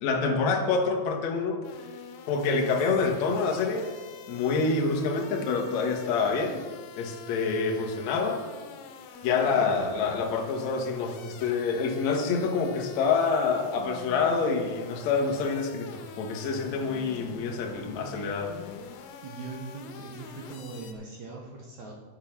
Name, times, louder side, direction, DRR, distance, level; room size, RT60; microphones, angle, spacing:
voice 1, 0.0-1.6 2.3-3.9 4.3-6.6 7.0-8.4 9.2-18.6, left 4 dB, 60° left, 2 dB, 2.0 m, -27 dB
sound 1, 1.6-20.9, left 6 dB, 85° left, 3.0 m, -45 dB
voice 2, 19.2-21.9, right 3 dB, 70° right, -1 dB, 1.9 m, -40 dB
12.0 x 6.6 x 5.9 m, 1.4 s
omnidirectional pair, 4.7 m